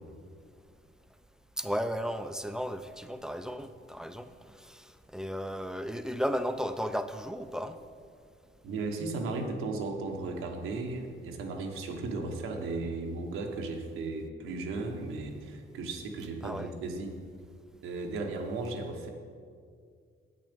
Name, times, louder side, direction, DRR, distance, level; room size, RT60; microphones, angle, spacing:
voice 1, 1.6-7.8 16.4-16.7, equal, 5° right, 10 dB, 0.4 m, -34 dB
voice 2, 8.6-17.2 17.8-19.1, right 3 dB, 90° right, 2 dB, 1.2 m, -35 dB
8.6 x 6.4 x 5.2 m, 2.2 s
cardioid pair, 90°, 21 cm